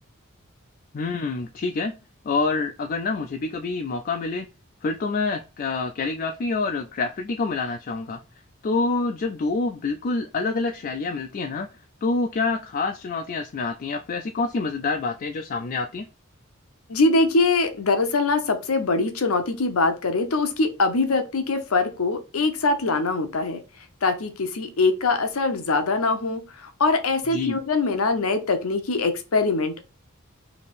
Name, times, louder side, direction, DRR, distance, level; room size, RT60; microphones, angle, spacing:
voice 1, 0.9-1.9 2.2-4.5 4.8-8.2 8.6-11.7 12.0-16.1 27.3-27.6, left 3 dB, 40° left, 4 dB, 0.3 m, -27 dB
voice 2, 16.9-23.6 24.0-29.9, left 3 dB, 85° left, 8 dB, 0.7 m, -23 dB
3.4 x 2.8 x 4.1 m, 0.31 s
head